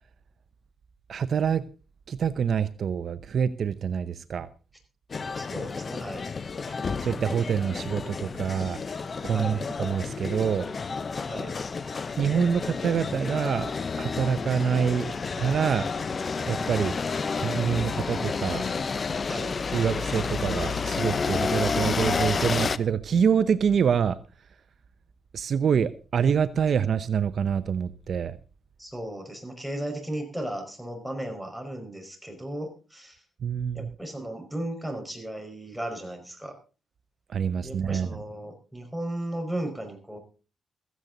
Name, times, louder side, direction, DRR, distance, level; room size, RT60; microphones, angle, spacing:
voice 1, 1.1-1.6 2.1-4.5 6.7-10.7 12.2-13.7 14.0-15.1 15.4-15.9 16.5-16.9 17.4-18.6 19.7-24.2 25.3-28.4 33.4-33.9 37.3-38.2, right 7 dB, 55° right, 13 dB, 0.8 m, -26 dB
sound 1, 5.1-22.8, left 5 dB, 40° left, 0.8 m, -30 dB
voice 2, 5.3-6.2 9.3-9.6 11.3-11.5 19.3-19.6 28.8-33.2 33.7-36.6 37.6-40.2, right 1 dB, ahead, 5 dB, 5.1 m, -35 dB
16.0 x 15.0 x 4.0 m, 0.34 s
cardioid pair, 110°, 0 cm